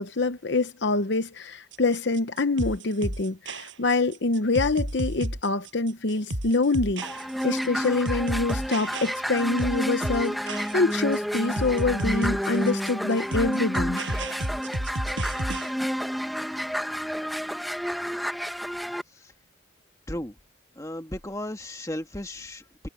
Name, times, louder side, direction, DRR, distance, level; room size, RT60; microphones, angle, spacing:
voice 1, 0.0-7.0 7.4-14.0, left 3 dB, 60° left, 0.8 m, -25 dB
sound 1, 1.7-15.7, right 1 dB, 65° right, 6.8 m, -32 dB
sound 2, 7.0-19.0, equal, ahead, 1.0 m, -30 dB
voice 2, 20.8-22.9, left 1 dB, 15° left, 1.7 m, -35 dB
head